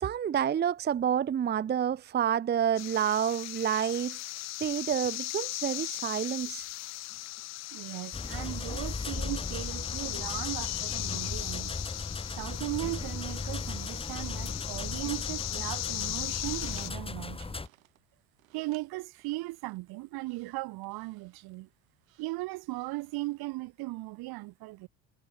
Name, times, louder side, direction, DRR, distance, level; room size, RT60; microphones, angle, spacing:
voice 1, 0.0-4.2 4.6-6.6, right 9 dB, 25° right, 0.6 m, -29 dB
sound 1, 2.8-16.9, left 17 dB, 45° left, 0.5 m, -38 dB
voice 2, 7.7-11.7 12.4-17.5 18.5-21.7 22.2-24.9, right 21 dB, 65° right, 1.7 m, -37 dB
sound 2, 8.1-17.7, left 3 dB, 15° left, 1.6 m, -37 dB
sound 3, 16.1-23.5, right 16 dB, 85° right, 5.6 m, -62 dB
hypercardioid pair, 70°, 40 cm